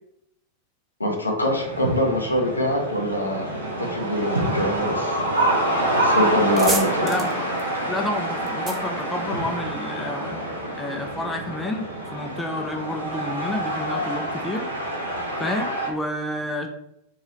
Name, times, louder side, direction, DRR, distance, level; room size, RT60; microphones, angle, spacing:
voice 1, 1.0-3.5 3.8-5.2 5.9-7.1, left 1 dB, 85° left, 1 dB, 0.6 m, -24 dB
sound 1, 1.4-15.9, right 1 dB, 80° right, 0.7 m, -27 dB
sound 2, 5.8-6.0 6.3-9.9, right 2 dB, 20° right, 0.7 m, -32 dB
voice 2, 7.0-7.5 7.9-10.4 10.8-14.7 15.4-16.7, left 1 dB, 10° left, 3 dB, 0.4 m, -30 dB
2.8 x 2.6 x 3.0 m, 0.78 s
figure-of-eight pair, 90°, 0 cm